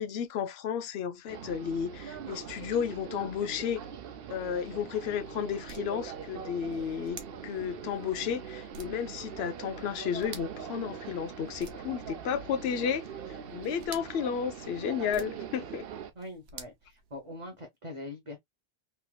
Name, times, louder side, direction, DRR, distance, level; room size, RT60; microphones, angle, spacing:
voice 1, 0.0-3.8 4.3-15.9, left 8 dB, 75° left, 0.8 m, -33 dB
sound 1, 1.3-16.1, right 7 dB, 65° right, 0.8 m, -42 dB
sound 2, 4.5-17.7, right 5 dB, 85° right, 1.1 m, -53 dB
voice 2, 16.1-18.4, left 1 dB, 30° right, 0.9 m, -43 dB
3.3 x 2.7 x 2.2 m
omnidirectional pair, 1.1 m